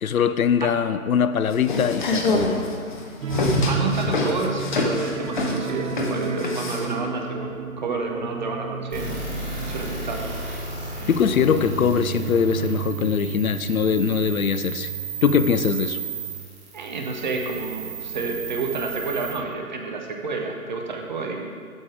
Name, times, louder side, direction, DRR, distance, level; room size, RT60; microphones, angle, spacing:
voice 1, 0.0-2.5 11.1-14.9 15.2-16.0, left 7 dB, 70° left, 12 dB, 0.5 m, -22 dB
sound 1, 1.5-6.9, left 3 dB, 35° left, 0.8 m, -25 dB
sound 2, 3.2-16.5 16.8-17.0 17.3-17.4, right 6 dB, 65° right, 0.6 m, -33 dB
voice 2, 3.7-10.6 16.7-21.5, right 3 dB, 30° right, 2 dB, 0.8 m, -30 dB
sound 3, 8.9-19.3, right 4 dB, 15° right, 1.7 m, -34 dB
7.8 x 6.5 x 4.8 m, 2.1 s
figure-of-eight pair, 145°, 43 cm